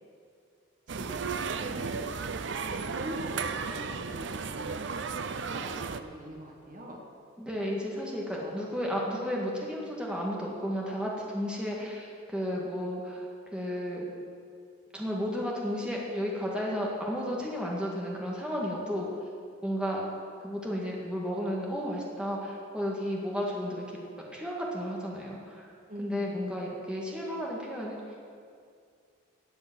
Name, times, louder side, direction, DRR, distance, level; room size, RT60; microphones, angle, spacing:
voice 1, 0.9-2.1 2.6-7.0 8.4-8.7 25.9-26.5, equal, 40° right, 0 dB, 1.4 m, -43 dB
sound 1, 0.9-6.0, right 5 dB, 55° right, 0.5 m, -34 dB
voice 2, 7.4-13.3 13.5-14.1 14.9-19.1 19.6-20.0 20.4-24.0 24.3-25.7 26.0-28.0, equal, 5° right, -3 dB, 1.8 m, -33 dB
16.5 x 8.9 x 6.1 m, 2.3 s
head